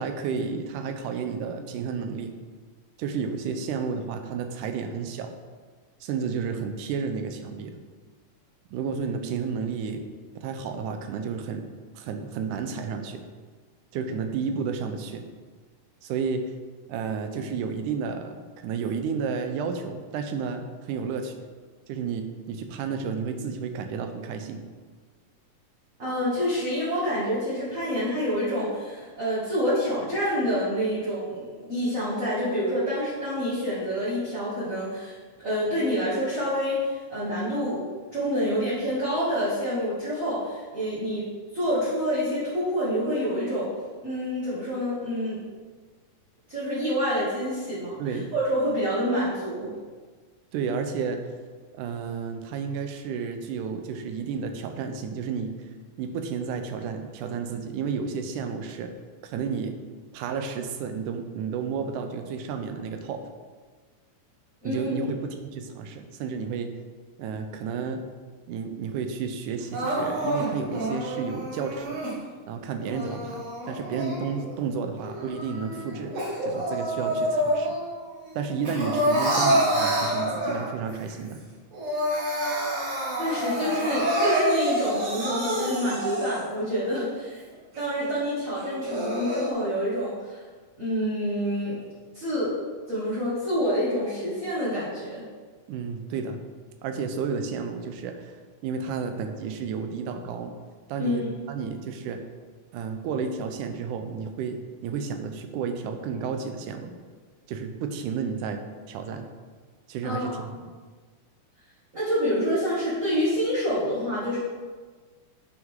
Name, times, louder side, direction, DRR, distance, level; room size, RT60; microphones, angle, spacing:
voice 1, 0.0-2.3 3.0-5.4 6.0-7.8 8.7-10.0 10.4-11.7 12.0-13.2 13.9-15.2 16.0-16.5 16.9-21.4 21.9-24.6 48.0-48.3 50.5-51.3 51.7-55.6 56.0-58.9 59.2-59.8 60.1-63.2 64.6-66.7 67.2-68.0 68.5-72.1 72.5-76.1 76.4-77.8 78.4-81.4 95.7-96.4 96.8-100.5 100.9-102.2 102.7-106.9 107.5-108.6 108.9-109.3 109.9-110.4, right 5 dB, 75° right, 7 dB, 2.1 m, -31 dB
voice 2, 26.0-35.2 35.4-37.8 38.1-43.7 44.0-45.4 46.5-49.7 64.6-65.1 83.2-87.4 87.8-90.4 90.8-91.8 92.1-92.5 92.9-95.2 101.0-101.3 110.0-110.6 111.9-114.4, equal, 30° right, -11 dB, 2.0 m, -27 dB
Crying sobbing, 69.7-72.1 72.8-74.6 75.0-77.9 78.2-80.9 81.3-81.4 81.7-86.6 87.1-87.2 87.7-87.8 88.6-89.5, right 1 dB, 55° right, 2.5 m, -27 dB
9.3 x 5.8 x 3.7 m, 1.5 s
omnidirectional pair, 3.8 m